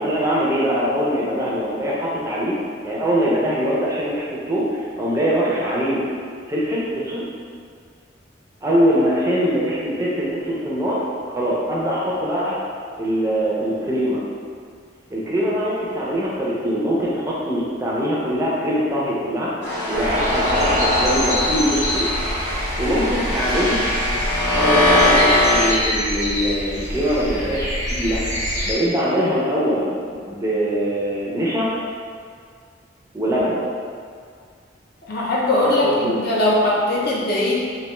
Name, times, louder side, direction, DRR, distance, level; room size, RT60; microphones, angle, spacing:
voice 1, 0.0-2.5 2.8-6.0 6.5-7.3 8.6-11.0 11.3-12.6 13.0-14.2 15.1-19.5 19.9-22.1 22.8-23.8 24.6-29.9 30.3-31.7 33.1-33.6 35.5-36.2, equal, 15° right, -6 dB, 0.4 m, -22 dB
sound 1, 19.6-25.7, left 1 dB, 80° left, 0.9 m, -21 dB
sound 2, 19.9-28.7, equal, 15° left, 0.7 m, -25 dB
voice 2, 35.1-37.5, left 1 dB, 55° left, -5 dB, 0.5 m, -20 dB
2.4 x 2.2 x 3.0 m, 2.1 s
head